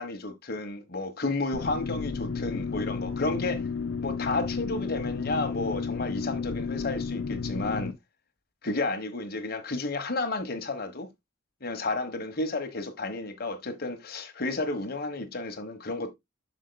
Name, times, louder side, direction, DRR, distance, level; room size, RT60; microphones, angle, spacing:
voice 1, 0.0-3.6 4.0-7.9 8.6-11.1 11.6-16.1, left 2 dB, 55° left, 1.3 m, -32 dB
sound 1, 1.5-7.9, left 5 dB, 85° left, 0.6 m, -32 dB
7.4 x 6.4 x 2.2 m
head